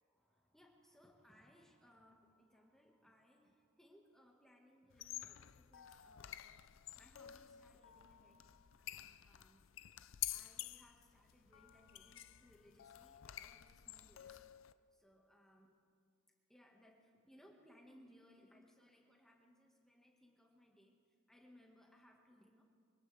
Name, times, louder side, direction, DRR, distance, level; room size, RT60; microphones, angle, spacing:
voice 1, 0.1-6.5 6.9-9.7 10.3-14.4 14.9-15.8 16.5-21.0 21.3-22.6, equal, ahead, 0 dB, 1.5 m, -66 dB
sound 1, 4.9-14.7, left 13 dB, 75° left, 0.5 m, -50 dB
24.0 x 17.5 x 3.4 m, 2.3 s
head